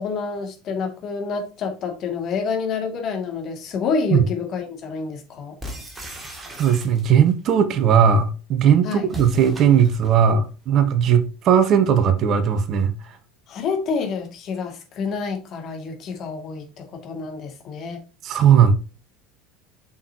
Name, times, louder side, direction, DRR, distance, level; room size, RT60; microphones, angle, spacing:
voice 1, 0.0-5.6 8.8-9.1 13.5-18.0, left 5 dB, 40° left, 2.1 m, -28 dB
sound 1, 5.6-7.3 9.1-10.2, equal, 15° right, 2.3 m, -38 dB
voice 2, 6.6-12.9 18.2-18.7, right 8 dB, 40° right, 1.0 m, -17 dB
7.3 x 6.3 x 2.8 m
figure-of-eight pair, 70°, 0 cm